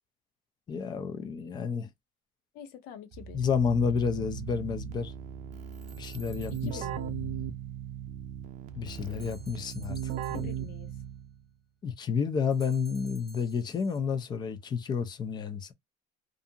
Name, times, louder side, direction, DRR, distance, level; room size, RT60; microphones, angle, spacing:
voice 1, 0.7-1.9 3.3-5.1 6.0-6.8 8.7-10.5 11.8-15.7, left 6 dB, 25° left, 0.4 m, -30 dB
voice 2, 2.5-3.4 6.5-7.1 10.2-10.9, left 9 dB, 75° left, 0.7 m, -45 dB
Keyboard (musical), 3.1-11.4, right 9 dB, 45° right, 0.5 m, -38 dB
sound 1, 5.7-7.1 9.2-10.9 12.5-14.0, right 3 dB, ahead, 0.8 m, -56 dB
2.5 x 2.5 x 2.6 m
cardioid pair, 155°, 17 cm